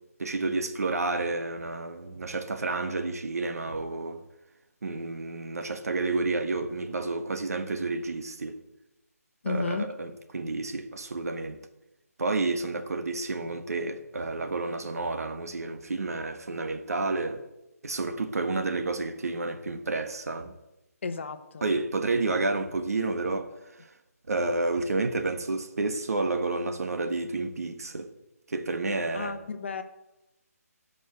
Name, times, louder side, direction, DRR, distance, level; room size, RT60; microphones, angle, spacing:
voice 1, 0.2-4.2 4.8-8.6 9.5-11.6 12.2-17.4 17.8-20.5 21.6-23.5 24.3-28.1 28.5-29.4, right 3 dB, 70° right, 1.4 m, -30 dB
voice 2, 9.4-9.9 21.0-21.7 29.1-29.8, left 4 dB, 45° left, 1.1 m, -32 dB
14.0 x 5.4 x 8.1 m
hypercardioid pair, 165°, 9 cm